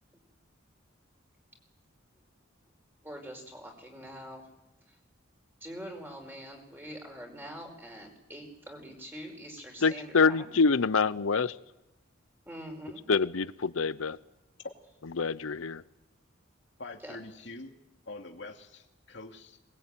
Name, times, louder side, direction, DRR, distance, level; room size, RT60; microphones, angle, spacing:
voice 1, 3.0-4.5 4.9-5.0 5.6-10.5 12.4-13.0 17.0-17.2, equal, 10° right, 3 dB, 5.0 m, -44 dB
voice 2, 9.8-11.6 13.1-14.2 15.2-15.8, left 4 dB, 85° left, 17 dB, 0.8 m, -26 dB
voice 3, 16.8-17.8 18.1-19.6, left 2 dB, 60° left, 3 dB, 2.6 m, -45 dB
22.5 x 20.5 x 9.1 m, 0.95 s
head